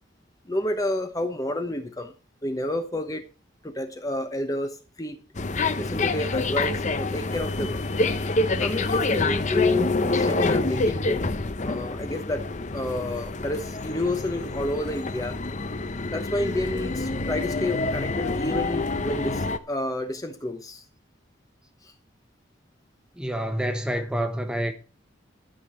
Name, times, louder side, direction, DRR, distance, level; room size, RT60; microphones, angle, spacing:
voice 1, 0.4-2.1 2.4-3.2 3.6-5.2 5.8-7.8 8.6-11.2 11.6-12.4 12.7-15.4 16.1-20.8 21.8-21.9, left 1 dB, 20° left, 1.0 m, -29 dB
sound 1, 5.4-19.6, left 2 dB, 40° left, 0.8 m, -27 dB
voice 2, 23.2-24.7, equal, 5° right, 1.2 m, -27 dB
12.5 x 6.2 x 6.3 m
head